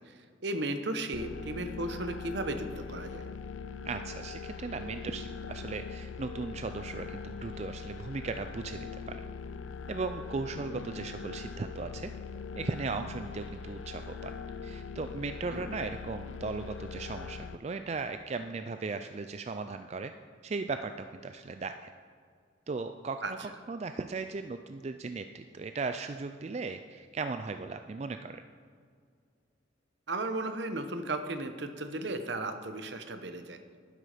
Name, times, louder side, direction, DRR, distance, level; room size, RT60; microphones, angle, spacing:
voice 1, 0.4-3.3 15.5-15.6 23.2-23.3 30.1-33.6, right 2 dB, 65° right, 8 dB, 0.9 m, -35 dB
sound 1, 1.1-17.6, left 5 dB, 80° left, 0.5 m, -42 dB
voice 2, 3.8-9.2 9.9-12.1 12.5-14.4 14.6-20.1 20.4-21.9 22.7-23.2 23.7-28.4, right 4 dB, 35° right, 8 dB, 0.3 m, -37 dB
12.0 x 9.9 x 5.1 m, 2.1 s
head